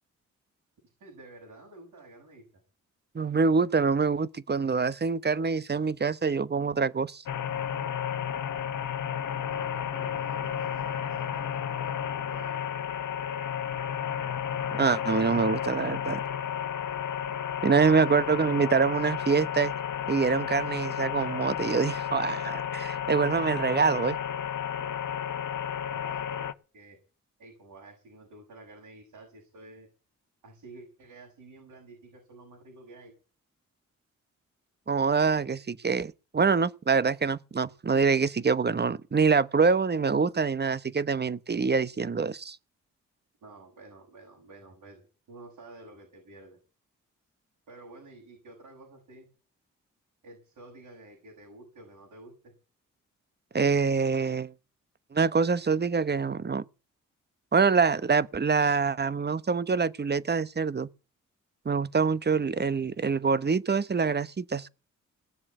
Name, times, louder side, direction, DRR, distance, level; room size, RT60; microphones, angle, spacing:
voice 1, 1.0-2.4 9.5-12.7 18.1-18.9 25.9-27.0 27.4-29.9 30.4-33.1 43.4-45.0 45.3-46.6 47.7-49.3 50.2-52.5, right 2 dB, 75° right, 7.3 m, -50 dB
voice 2, 3.1-7.2 14.7-16.2 17.6-19.7 20.1-24.2 34.9-42.6 53.5-54.5 55.1-56.6 57.5-60.9 61.6-64.7, right 5 dB, 30° right, 1.0 m, -25 dB
sound 1, 7.3-26.5, left 9 dB, 65° left, 1.1 m, -32 dB
18.5 x 7.3 x 9.3 m
supercardioid pair, 45°, 33 cm